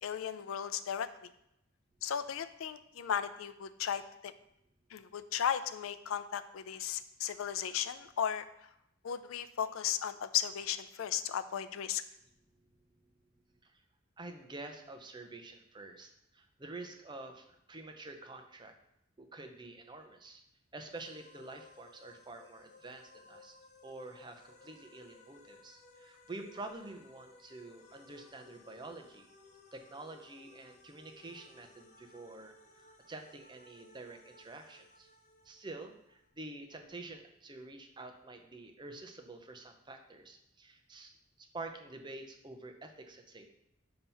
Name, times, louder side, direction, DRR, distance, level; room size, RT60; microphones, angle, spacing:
voice 1, 0.0-1.1 2.0-4.3 4.9-8.5 9.0-12.0, left 9 dB, 85° left, 12 dB, 0.4 m, -35 dB
voice 2, 14.2-18.7 19.2-20.4 20.7-23.6 23.8-29.3 29.7-35.1 35.4-43.5, right 2 dB, 20° right, 5 dB, 0.6 m, -48 dB
sound 1, 20.9-36.3, left 3 dB, 35° left, 0.7 m, -60 dB
7.2 x 2.9 x 5.5 m, 0.82 s
head